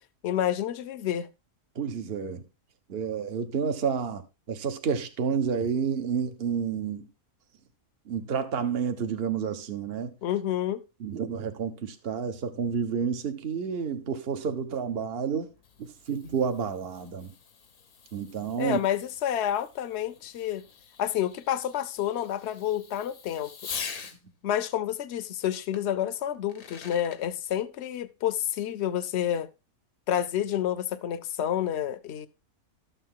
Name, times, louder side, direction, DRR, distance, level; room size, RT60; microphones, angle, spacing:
voice 1, 0.2-1.3 10.2-10.8 18.6-20.6 21.0-23.5 24.4-29.5 30.1-32.3, left 10 dB, 55° left, 0.9 m, -29 dB
voice 2, 1.7-2.4 2.9-4.2 4.5-7.1 8.1-10.1 11.0-15.5 15.8-17.3 18.1-18.8, right 6 dB, 45° right, 1.2 m, -30 dB
Fireworks, 15.3-24.2 25.7-25.8 26.3-27.2, left 6 dB, 85° left, 1.8 m, -44 dB
12.5 x 7.2 x 3.7 m
omnidirectional pair, 1.5 m